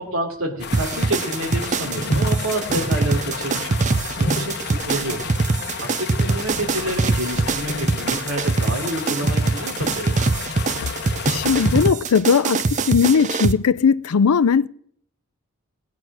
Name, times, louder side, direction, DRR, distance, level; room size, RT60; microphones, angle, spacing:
voice 1, 0.0-5.2 5.8-10.2, right 1 dB, 70° right, 3.1 m, -28 dB
sound 1, 0.6-11.9, left 4 dB, 50° left, 1.1 m, -30 dB
sound 2, 0.7-13.5, right 3 dB, 35° right, 0.5 m, -23 dB
voice 2, 11.3-14.7, left 6 dB, 80° left, 0.5 m, -18 dB
18.5 x 9.5 x 6.1 m
head